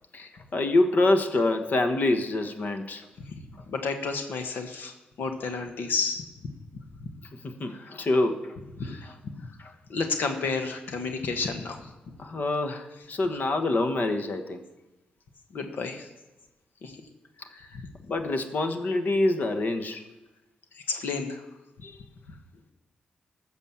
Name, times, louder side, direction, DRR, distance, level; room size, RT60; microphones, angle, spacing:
voice 1, 0.1-3.0 7.4-8.4 8.9-9.0 9.6-9.7 12.2-14.6 18.1-20.0 21.8-22.0, left 2 dB, 55° left, 7 dB, 1.3 m, -26 dB
voice 2, 3.7-4.9 5.2-6.5 7.7-7.9 8.8-9.3 9.9-11.8 15.5-16.1 16.8-16.9 17.5-17.8 20.9-21.4, left 4 dB, 80° left, 6 dB, 1.3 m, -31 dB
14.0 x 6.3 x 7.2 m, 1.0 s
cardioid pair, 95°, 3 cm